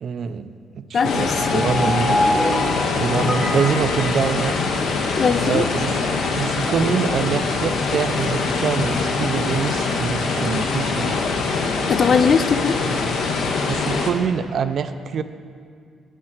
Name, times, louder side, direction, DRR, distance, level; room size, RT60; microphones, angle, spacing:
voice 1, 0.0-2.2 2.9-4.5 5.4-6.0 6.3-11.2 13.7-15.2, right 6 dB, 60° right, 11 dB, 0.4 m, -25 dB
voice 2, 0.9-1.7 5.2-5.7 11.2-11.3 11.9-12.9, left 6 dB, 50° left, 12 dB, 0.3 m, -20 dB
sound 1, 1.0-14.1, left 4 dB, 75° left, 0.8 m, -23 dB
sound 2, 1.1-5.0, left 1 dB, 25° left, 1.0 m, -25 dB
6.5 x 6.4 x 5.9 m, 2.2 s
cardioid pair, 90°, 0 cm